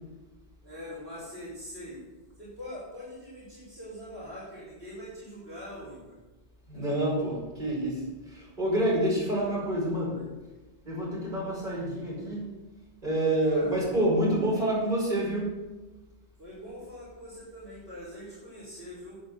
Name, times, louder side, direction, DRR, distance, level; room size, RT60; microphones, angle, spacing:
voice 1, 0.6-2.0 2.4-6.2 10.0-10.3 13.4-13.8 16.4-19.1, equal, 65° right, -9 dB, 5.2 m, -43 dB
voice 2, 6.7-8.0 8.3-10.2 10.9-12.5 13.0-15.6, right 1 dB, 45° right, -6 dB, 5.6 m, -27 dB
9.8 x 9.5 x 6.7 m, 1.2 s
omnidirectional pair, 1.1 m